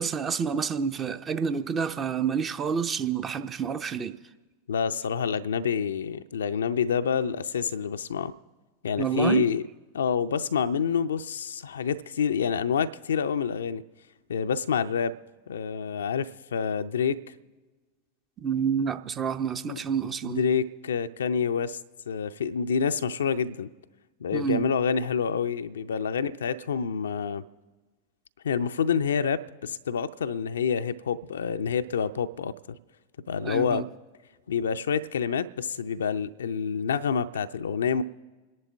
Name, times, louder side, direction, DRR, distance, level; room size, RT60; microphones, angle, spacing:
voice 1, 0.0-4.2 9.0-9.5 18.4-20.4 24.3-24.7 33.4-33.9, right 7 dB, 20° right, 0.6 m, -28 dB
voice 2, 4.7-8.3 8.8-9.7 9.9-13.8 14.3-15.1 15.5-17.2 19.7-19.8 20.0-21.8 22.1-23.7 24.2-27.4 28.4-32.5 33.3-33.9 34.5-38.0, left 6 dB, 65° left, 0.5 m, -27 dB
28.0 x 11.0 x 3.4 m
figure-of-eight pair, 90°, 0 cm